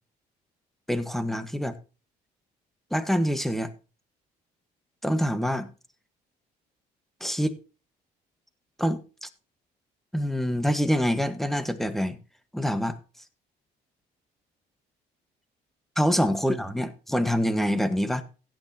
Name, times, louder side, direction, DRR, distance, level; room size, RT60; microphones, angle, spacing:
voice 1, 0.9-1.8 2.9-3.7 5.0-5.7 7.2-7.6 8.8-9.3 10.1-12.2 12.5-12.9 16.0-18.2, equal, ahead, 1.4 m, -26 dB
16.0 x 9.0 x 2.9 m
cardioid pair, 110°, 17 cm